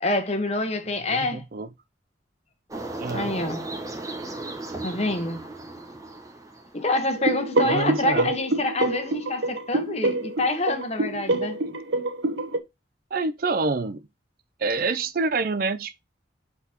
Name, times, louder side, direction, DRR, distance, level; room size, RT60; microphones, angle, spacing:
voice 1, 0.0-1.4 3.1-3.7 4.8-5.4 6.7-11.6, left 2 dB, 35° left, 1.2 m, -26 dB
voice 2, 1.1-1.7 3.0-3.3 7.6-8.3 13.1-14.0 14.6-16.0, right 3 dB, 50° right, 0.4 m, -27 dB
sound 1, 2.7-7.1, right 2 dB, 15° right, 1.1 m, -36 dB
sound 2, 7.2-12.6, right 2 dB, 75° right, 1.0 m, -26 dB
8.1 x 4.1 x 2.9 m
head